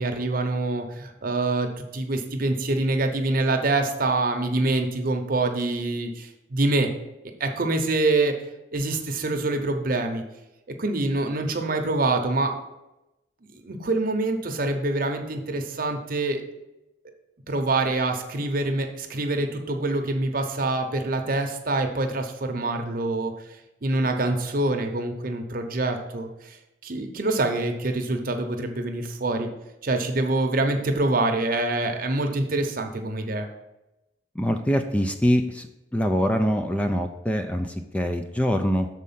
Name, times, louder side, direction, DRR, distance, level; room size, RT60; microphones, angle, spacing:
voice 1, 0.0-6.9 7.4-8.3 8.7-10.2 10.8-12.5 13.5-16.4 17.5-23.3 23.8-26.6 26.8-29.5 29.8-33.5, right 2 dB, 50° right, 4 dB, 0.8 m, -25 dB
voice 2, 34.4-35.7 35.9-38.9, equal, 5° left, 6 dB, 0.3 m, -24 dB
6.4 x 4.2 x 5.6 m, 0.94 s
head